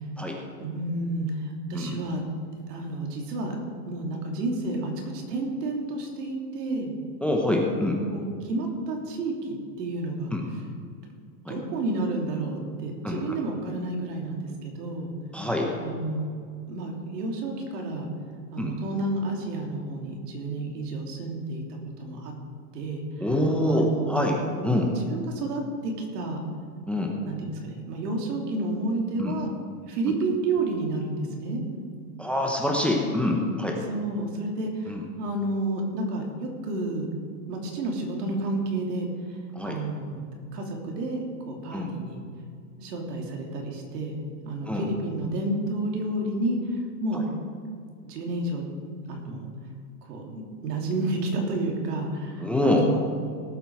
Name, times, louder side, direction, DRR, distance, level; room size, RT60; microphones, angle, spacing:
voice 1, 0.6-2.2 2.7-3.5 3.9-6.9 8.1-10.3 11.5-15.1 15.8-16.2 16.7-18.1 18.5-22.3 22.7-23.0 23.7-24.2 25.1-26.4 27.2-29.5 29.8-31.6 33.9-37.1 37.5-39.1 39.6-40.2 40.5-42.2 42.8-44.1 44.4-46.6 47.0-47.2 48.0-48.7 49.1-49.4 50.1-53.0, right 2 dB, 70° right, 1 dB, 3.1 m, -30 dB
voice 2, 7.2-8.0 10.3-10.5 11.4-11.6 13.0-13.4 15.3-15.7 18.6-18.7 23.2-24.4 24.6-24.9 26.9-27.1 29.2-29.3 32.2-33.8 34.9-35.0 39.5-39.8 41.7-41.9 44.7-44.9 47.1-47.3 52.4-53.0, left 1 dB, ahead, 1 dB, 0.9 m, -25 dB
17.5 x 8.0 x 4.8 m, 2.2 s
supercardioid pair, 145°, 49 cm